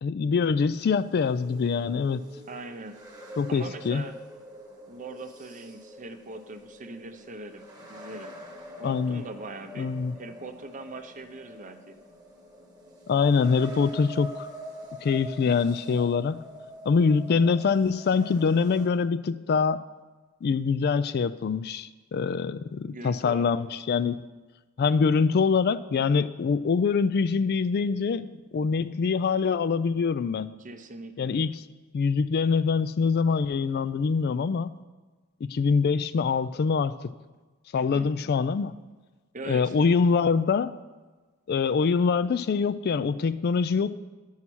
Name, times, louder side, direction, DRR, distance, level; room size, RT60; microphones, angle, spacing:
voice 1, 0.0-2.2 3.4-4.0 8.8-9.2 9.8-10.1 13.1-14.5 15.0-16.4 16.9-19.8 20.4-24.2 24.8-30.5 31.2-31.6 31.9-34.7 35.4-37.1 37.7-38.8 39.5-40.7 41.5-44.0, left 5 dB, 45° left, 14 dB, 0.3 m, -24 dB
sound 1, 0.9-18.9, equal, 15° right, 1.2 m, -45 dB
voice 2, 2.5-3.0 3.5-4.2 4.9-7.6 7.9-8.3 8.8-12.0 22.8-23.5 30.6-31.4 37.7-38.1 39.3-39.9, right 2 dB, 35° right, 8 dB, 0.7 m, -41 dB
11.0 x 5.6 x 6.1 m, 1.3 s
head